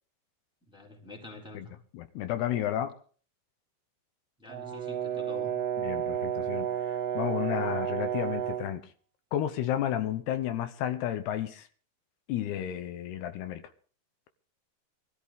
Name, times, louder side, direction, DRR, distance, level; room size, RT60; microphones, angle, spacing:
voice 1, 0.6-1.7 4.4-5.6, left 3 dB, ahead, 3.2 m, -46 dB
voice 2, 1.9-3.0 5.8-8.9 9.3-11.7 12.3-13.6, left 11 dB, 80° left, 3.0 m, -32 dB
Brass instrument, 4.5-8.7, right 9 dB, 55° right, 1.8 m, -32 dB
22.0 x 14.0 x 3.7 m
omnidirectional pair, 4.8 m